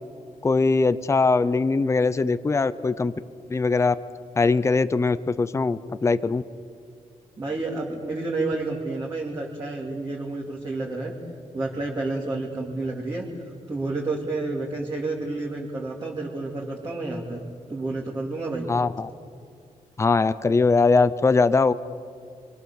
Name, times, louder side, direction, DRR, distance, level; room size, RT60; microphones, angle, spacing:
voice 1, 0.4-3.1 3.5-3.9 4.4-6.4 18.7-19.1 20.0-21.7, left 4 dB, 20° left, 14 dB, 0.7 m, -21 dB
voice 2, 7.4-11.1 11.5-18.7, right 2 dB, 25° right, -3 dB, 2.8 m, -30 dB
30.0 x 23.5 x 7.1 m, 2.3 s
wide cardioid pair, 175°, 14 cm